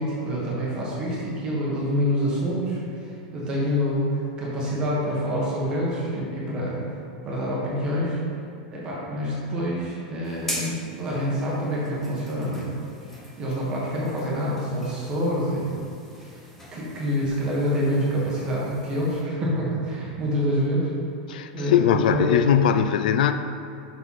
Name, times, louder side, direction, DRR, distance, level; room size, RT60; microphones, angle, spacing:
voice 1, 0.0-6.8 7.2-8.2 8.7-12.7 13.4-15.9 16.2-16.3 16.7-20.9 21.5-22.4, equal, 20° right, -6 dB, 1.4 m, -26 dB
sound 1, 10.2-19.2, left 1 dB, 5° left, 1.0 m, -41 dB
voice 2, 21.3-23.3, left 9 dB, 80° left, 9 dB, 0.4 m, -20 dB
6.7 x 6.1 x 4.1 m, 2.4 s
supercardioid pair, 175°, 4 cm